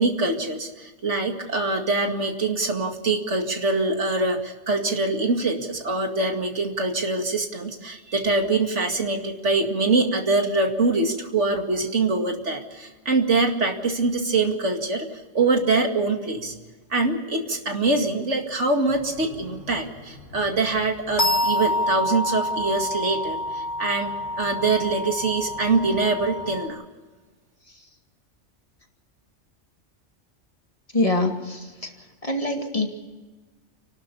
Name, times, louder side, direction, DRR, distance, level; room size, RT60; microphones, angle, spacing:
voice 1, 0.0-15.1 15.3-16.5 16.9-26.8, right 3 dB, 80° right, 4 dB, 2.5 m, -24 dB
sound 1, 18.9-26.7, left 1 dB, 55° left, 4.1 m, -28 dB
voice 2, 30.9-31.9 32.2-32.9, left 2 dB, 30° left, 3 dB, 2.4 m, -24 dB
30.0 x 12.5 x 7.0 m, 1.3 s
omnidirectional pair, 1.2 m